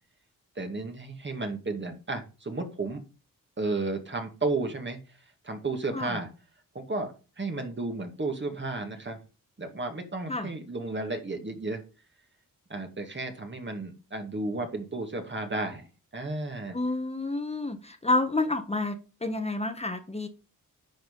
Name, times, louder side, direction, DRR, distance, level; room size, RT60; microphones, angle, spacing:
voice 1, 0.6-3.0 3.6-5.0 5.4-6.3 6.7-9.2 9.6-11.8 12.7-15.9 16.1-16.7, right 3 dB, 35° right, 4 dB, 2.3 m, -33 dB
voice 2, 16.7-20.3, left 2 dB, 20° left, 6 dB, 1.4 m, -29 dB
10.5 x 4.7 x 5.4 m, 0.33 s
cardioid pair, 70°, 33 cm